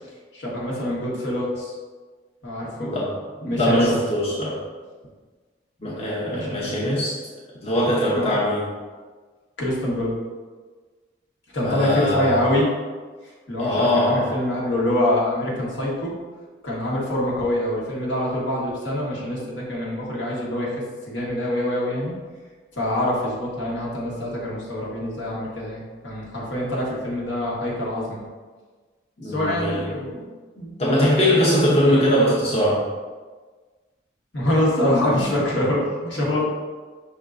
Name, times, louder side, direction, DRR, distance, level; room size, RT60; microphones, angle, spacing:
voice 1, 0.3-1.8 2.4-2.9 3.5-3.9 6.3-7.0 8.1-8.4 9.6-10.2 11.5-12.7 13.5-16.1 16.6-20.7 21.1-22.2 22.8-28.2 29.2-30.3 30.6-30.7 31.4-31.7 34.3-36.4, left 1 dB, 80° left, -5 dB, 1.3 m, -25 dB
voice 2, 2.8-4.6 5.8-7.3 7.6-8.7 11.6-12.5 13.6-14.4 29.2-30.1 30.8-32.9, equal, 35° left, -5 dB, 0.7 m, -22 dB
5.4 x 3.6 x 2.5 m, 1.4 s
head